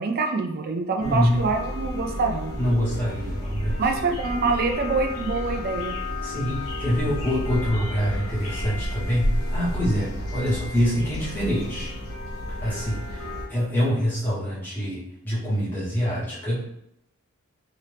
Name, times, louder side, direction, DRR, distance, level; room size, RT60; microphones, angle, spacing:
voice 1, 0.0-2.5 3.8-5.9, right 4 dB, 45° right, 4 dB, 0.3 m, -25 dB
sound 1, 1.0-13.5, left 1 dB, 80° left, 0.9 m, -31 dB
voice 2, 1.0-1.5 2.6-3.8 6.2-11.9 12.6-16.7, equal, 10° left, -10 dB, 1.2 m, -25 dB
2.8 x 2.5 x 3.3 m, 0.79 s
head